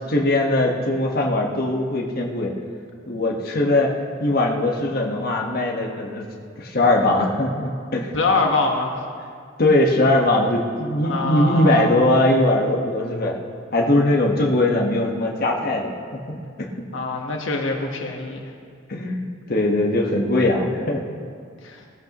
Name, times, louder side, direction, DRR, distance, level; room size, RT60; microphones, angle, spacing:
voice 1, 0.1-2.5 3.1-3.9 4.2-6.3 6.6-8.1 9.6-13.4 13.7-16.7 18.9-21.0, left 1 dB, 50° left, -1 dB, 1.5 m, -20 dB
voice 2, 8.1-9.0 11.0-11.9 16.9-18.4 21.6-21.8, left 3 dB, 80° left, 1 dB, 1.4 m, -24 dB
20.0 x 14.0 x 3.1 m, 2.1 s
head